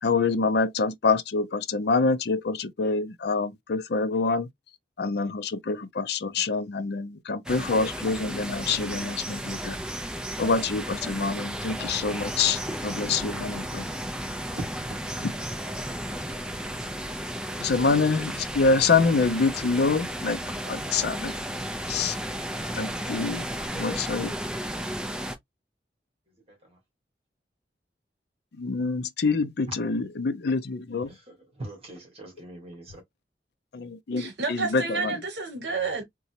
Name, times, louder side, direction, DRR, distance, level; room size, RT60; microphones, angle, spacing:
voice 1, 0.0-4.5 5.0-9.8 10.4-13.9 17.6-20.4 20.7-21.3 21.9-22.2 22.7-23.5 23.7-24.3 28.6-31.1 33.7-35.2, left 4 dB, 65° left, 0.5 m, -26 dB
sound 1, 7.5-25.4, equal, 5° right, 0.5 m, -34 dB
voice 2, 14.4-15.0 26.3-26.8 29.7-29.8 31.1-33.0, right 1 dB, 35° right, 1.9 m, -42 dB
voice 3, 34.2-36.0, right 4 dB, 65° right, 1.0 m, -30 dB
4.0 x 2.3 x 2.8 m
head